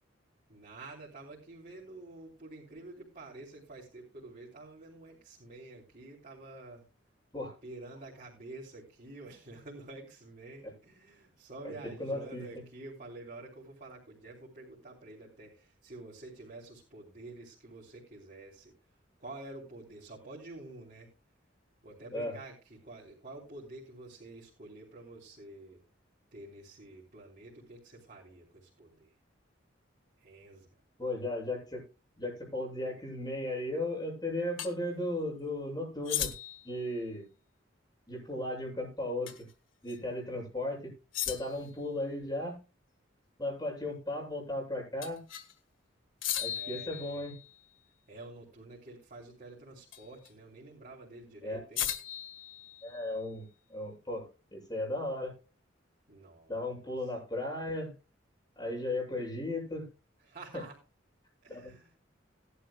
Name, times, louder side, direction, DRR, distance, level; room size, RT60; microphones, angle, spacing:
voice 1, 0.5-6.9 7.6-18.7 19.2-21.1 21.8-25.8 26.3-29.1 30.2-30.7 46.5-47.2 48.1-51.9 56.1-57.1 60.2-60.8 61.4-61.9, right 2 dB, 45° right, -4 dB, 3.6 m, -49 dB
voice 2, 12.0-12.4 22.1-22.4 31.0-31.8 32.2-36.3 36.6-37.3 38.1-39.3 39.8-40.9 41.3-42.6 43.4-45.2 46.4-47.3 51.4-51.6 52.8-55.3 56.5-57.9 58.6-59.9 61.5-61.7, left 1 dB, 20° left, -2 dB, 7.5 m, -36 dB
sound 1, 34.6-34.7 36.0-36.7 39.3-39.5 39.9-40.0 41.1-41.7 45.0-45.5 46.2-47.6 49.9-50.3 51.8-53.1, left 11 dB, 85° left, 1.8 m, -37 dB
18.5 x 11.5 x 2.3 m, 0.29 s
head